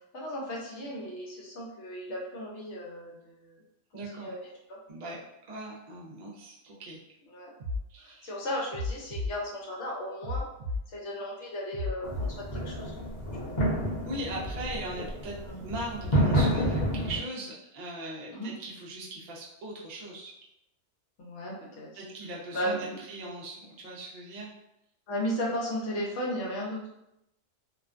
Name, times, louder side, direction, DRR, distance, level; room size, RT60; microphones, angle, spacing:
voice 1, 0.1-3.6 4.1-4.4 4.7-4.8 5.1-5.2 7.3-7.5 8.0-10.4 10.9-12.9 15.5-15.6 18.3-18.5 21.2-22.0 22.5-23.0 25.1-26.8, equal, 70° left, -3 dB, 0.9 m, -35 dB
voice 2, 3.9-4.3 4.9-5.2 5.5-7.0 7.9-8.3 14.0-15.4 15.6-20.3 21.9-24.5, right 1 dB, 55° right, -4 dB, 0.5 m, -39 dB
sound 1, 7.6-7.8 8.7-9.3 10.2-10.8 11.7-12.3, left 2 dB, 75° right, 0.9 m, -32 dB
sound 2, 12.0-17.2, equal, 40° left, 0.8 m, -29 dB
2.4 x 2.2 x 2.4 m, 0.85 s
omnidirectional pair, 1.2 m